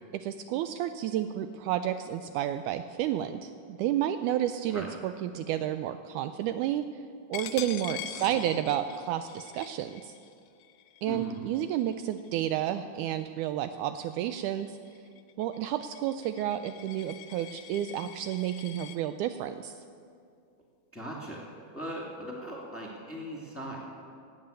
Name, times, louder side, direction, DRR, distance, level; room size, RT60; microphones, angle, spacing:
voice 1, 0.2-6.9 7.3-10.2 11.0-14.8 15.4-19.8, right 11 dB, 80° right, 9 dB, 1.9 m, -31 dB
Coin (dropping), 7.3-12.7 13.2-13.5 13.9-19.0, left 11 dB, 90° left, 2.3 m, -44 dB
voice 2, 8.1-8.6 11.1-11.4 20.9-23.8, equal, 5° left, -3 dB, 2.0 m, -39 dB
16.0 x 8.8 x 8.8 m, 2.3 s
omnidirectional pair, 3.8 m